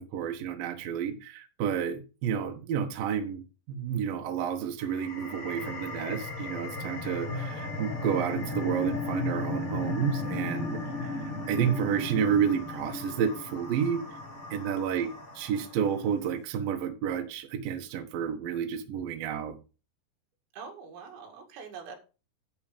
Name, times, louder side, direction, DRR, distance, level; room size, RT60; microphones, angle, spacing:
voice 1, 0.0-3.4 3.7-14.0 14.5-15.1 15.4-19.5, right 8 dB, 65° right, 2.6 m, -30 dB
sound 1, 4.8-16.0, left 3 dB, 35° left, 1.1 m, -36 dB
voice 2, 10.8-11.2 14.9-15.2 20.5-22.0, right 5 dB, 85° right, 4.5 m, -45 dB
11.0 x 5.5 x 5.2 m
omnidirectional pair, 5.1 m